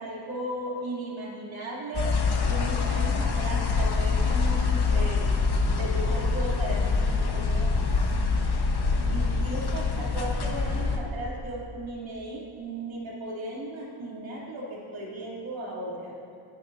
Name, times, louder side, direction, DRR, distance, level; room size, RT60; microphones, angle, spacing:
voice 1, 0.0-2.1 2.4-5.5 5.8-7.7 9.1-16.2, right 1 dB, 75° right, -5 dB, 3.5 m, -36 dB
sound 1, 1.9-11.0, left 4 dB, 55° left, 1.4 m, -25 dB
21.5 x 11.0 x 2.8 m, 2.6 s
wide cardioid pair, 120°, 47 cm